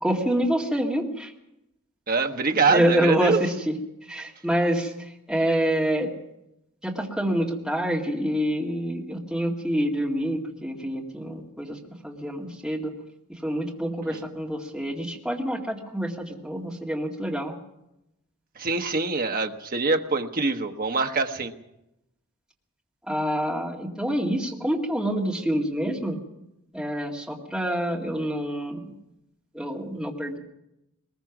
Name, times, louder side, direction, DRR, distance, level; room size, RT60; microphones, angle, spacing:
voice 1, 0.0-1.3 2.7-3.8 4.0-6.1 6.8-12.9 13.3-17.5 23.1-26.2 26.7-28.9 29.5-30.4, equal, 5° right, -2 dB, 2.1 m, -27 dB
voice 2, 2.1-3.4 14.0-14.2 18.6-21.5, right 4 dB, 40° right, 5 dB, 1.1 m, -24 dB
21.0 x 20.5 x 6.0 m, 0.89 s
head